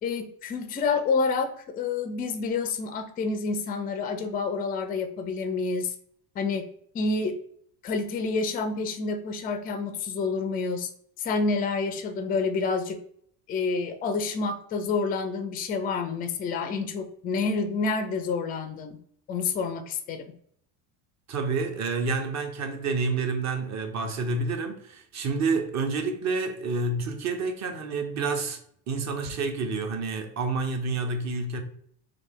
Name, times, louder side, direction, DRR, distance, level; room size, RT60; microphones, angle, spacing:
voice 1, 0.0-5.9 6.4-6.6 6.9-7.3 7.8-10.9 11.2-13.0 13.5-19.0 19.3-20.2, left 4 dB, 20° left, 0.3 m, -28 dB
voice 2, 21.3-28.6 28.9-31.6, right 3 dB, 35° right, 0.7 m, -29 dB
3.2 x 2.3 x 3.6 m
supercardioid pair, 90°, 50 cm